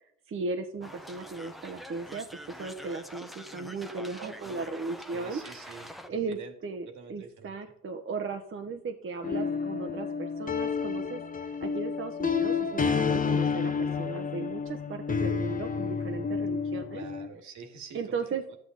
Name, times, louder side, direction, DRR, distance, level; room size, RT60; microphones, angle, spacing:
voice 1, 0.3-2.3 2.6-5.7 6.1-17.0 17.9-18.4, right 4 dB, 45° right, 5 dB, 1.0 m, -36 dB
sound 1, 0.8-6.1, equal, ahead, 1.0 m, -45 dB
voice 2, 4.2-4.7 5.1-6.5 6.8-7.6 16.9-18.6, right 5 dB, 70° right, 5 dB, 2.1 m, -46 dB
sound 2, 9.2-17.3, left 5 dB, 25° left, 0.9 m, -30 dB
12.0 x 8.5 x 4.0 m, 0.68 s
cardioid pair, 90°, 30 cm